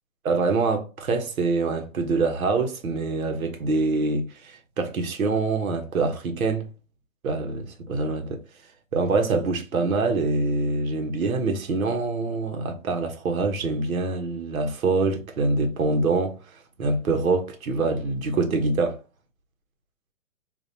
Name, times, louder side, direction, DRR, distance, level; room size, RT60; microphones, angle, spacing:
voice 1, 0.2-6.6 7.2-8.4 8.9-16.4 16.8-19.0, right 3 dB, 80° right, 1.3 m, -25 dB
5.3 x 2.7 x 2.8 m
hypercardioid pair, 165°, 42 cm